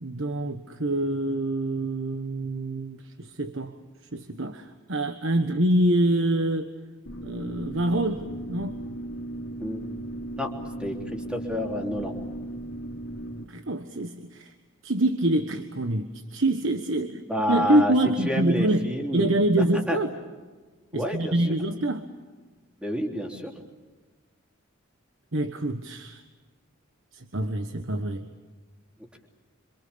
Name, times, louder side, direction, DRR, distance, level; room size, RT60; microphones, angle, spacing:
voice 1, 0.0-3.7 4.1-6.7 7.2-8.8 13.5-14.5 14.8-17.2 17.5-20.1 20.9-22.1 25.3-26.2 27.1-28.2, right 1 dB, 65° right, 7 dB, 1.4 m, -26 dB
sound 1, 7.1-13.4, right 1 dB, 70° left, 3.0 m, -36 dB
voice 2, 10.8-12.2 17.3-17.9 18.2-20.0 20.9-21.3 22.8-23.5, equal, 5° right, 1 dB, 3.4 m, -29 dB
27.5 x 26.5 x 7.0 m, 1.4 s
head